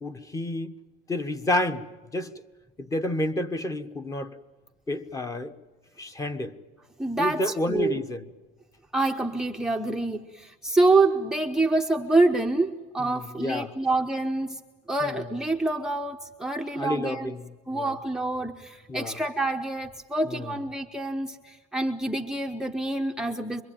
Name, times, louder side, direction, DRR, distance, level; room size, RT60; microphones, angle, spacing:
voice 1, 0.0-0.7 1.1-1.9 2.1-2.3 2.8-4.4 4.9-5.5 6.0-6.5 7.2-8.3 13.0-13.7 15.0-15.3 16.7-18.0 18.9-19.2 20.3-20.5, left 1 dB, 15° left, 9 dB, 1.3 m, -30 dB
voice 2, 7.0-8.0 8.9-14.6 14.9-17.3 17.7-23.6, right 2 dB, 5° right, 2 dB, 0.9 m, -26 dB
26.0 x 23.0 x 9.0 m, 1.3 s
cardioid pair, 140°, 20 cm